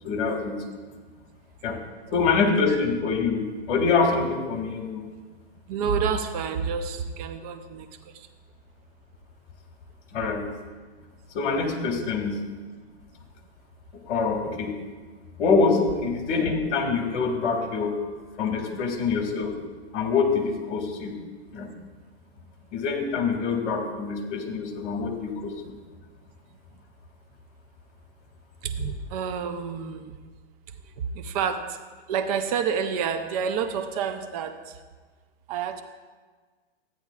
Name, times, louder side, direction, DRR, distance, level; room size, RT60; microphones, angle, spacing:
voice 1, 0.0-0.6 1.6-1.8 2.1-5.0 10.1-10.5 11.3-12.4 13.9-14.7 15.4-18.1 18.4-19.5 19.9-21.2 21.5-21.7 22.7-25.5, left 4 dB, 50° left, 2 dB, 1.9 m, -25 dB
voice 2, 5.7-8.3 28.6-30.1 30.8-31.8 32.1-34.8 35.5-35.8, right 6 dB, 35° right, 7 dB, 0.5 m, -29 dB
13.5 x 9.5 x 2.4 m, 1.4 s
hypercardioid pair, 150°, 35 cm